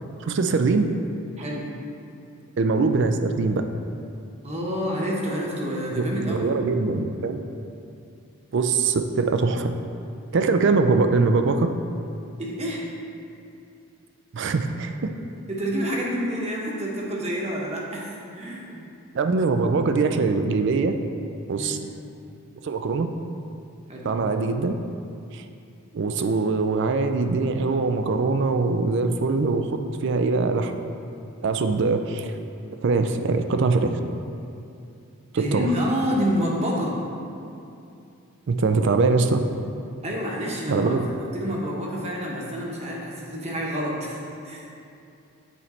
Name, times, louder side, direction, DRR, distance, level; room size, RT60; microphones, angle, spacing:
voice 1, 0.2-0.8 2.6-3.6 6.0-7.4 8.5-9.7 10.3-11.7 14.3-15.1 19.1-20.9 21.5-21.8 22.6-23.1 24.0-24.7 25.3-25.4 25.9-30.7 31.4-32.3 32.8-34.0 35.3-35.7 38.5-39.4 40.7-41.0, right 4 dB, 55° right, 7 dB, 0.4 m, -22 dB
voice 2, 1.4-1.7 4.4-6.5 12.4-12.8 15.5-18.8 21.5-21.7 23.9-24.2 35.3-37.0 40.0-40.9 41.2-44.7, equal, 30° right, -3 dB, 0.9 m, -28 dB
8.2 x 3.2 x 4.2 m, 2.6 s
head